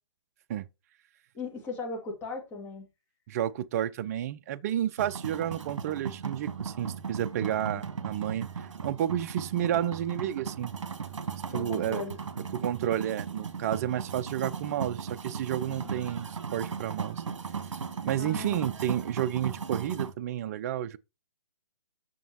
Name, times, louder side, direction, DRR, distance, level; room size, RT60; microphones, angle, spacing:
voice 1, 1.3-2.9 7.5-7.8 11.5-12.2 15.7-15.9 18.2-18.7, left 3 dB, 15° left, 1.9 m, -38 dB
voice 2, 3.3-10.7 11.5-12.0 12.5-17.2 18.0-21.0, right 11 dB, 30° right, 0.4 m, -31 dB
sound 1, 5.0-20.1, right 6 dB, 80° right, 1.2 m, -37 dB
7.3 x 6.1 x 2.8 m
hypercardioid pair, 150°, 16 cm